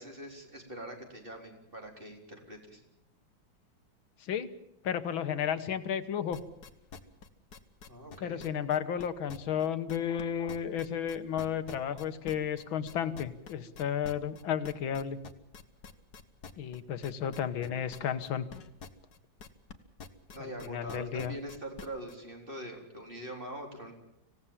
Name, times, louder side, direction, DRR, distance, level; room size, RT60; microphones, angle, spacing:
voice 1, 0.0-2.8 7.9-8.4 20.3-23.9, right 1 dB, 25° right, 2 dB, 4.3 m, -43 dB
voice 2, 4.8-6.4 8.2-15.2 16.6-18.5 20.4-21.4, left 8 dB, 85° left, 12 dB, 2.0 m, -33 dB
sound 1, 6.3-10.2 10.5-19.7 20.0-22.2, left 5 dB, 55° left, 1.8 m, -47 dB
26.0 x 17.0 x 7.4 m, 0.86 s
omnidirectional pair, 2.1 m